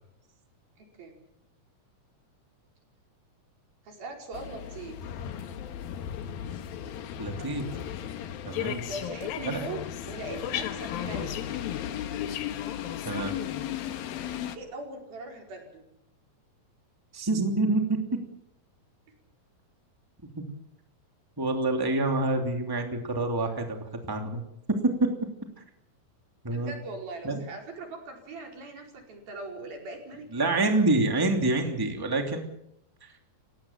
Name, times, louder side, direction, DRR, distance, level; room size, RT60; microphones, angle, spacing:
voice 1, 0.8-1.2 3.8-5.0 8.9-9.8 10.0-11.3 14.5-15.8 26.5-30.5, right 2 dB, 85° right, 1 dB, 6.9 m, -40 dB
sound 1, 4.3-14.6, left 10 dB, 85° left, 3.1 m, -35 dB
voice 2, 7.2-7.6 8.4-8.9 9.4-9.6 13.0-13.3 17.1-18.0 21.4-24.4 25.0-25.1 26.4-26.7 27.2-27.4 30.3-32.4 33.0-33.1, right 2 dB, 5° right, 3 dB, 2.4 m, -27 dB
30.0 x 17.0 x 7.4 m, 0.79 s
omnidirectional pair, 4.1 m